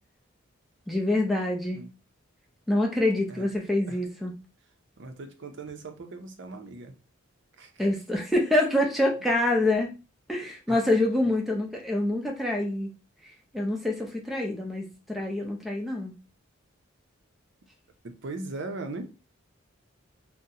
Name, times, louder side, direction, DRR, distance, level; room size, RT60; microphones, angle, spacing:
voice 1, 0.9-1.8 2.7-4.3 7.8-9.9 10.3-12.9 13.5-16.1, left 1 dB, ahead, 0 dB, 0.5 m, -26 dB
voice 2, 5.0-7.0 7.6-7.9 10.7-10.8 18.0-19.1, right 3 dB, 55° right, 5 dB, 0.5 m, -39 dB
3.8 x 2.0 x 2.7 m, 0.32 s
head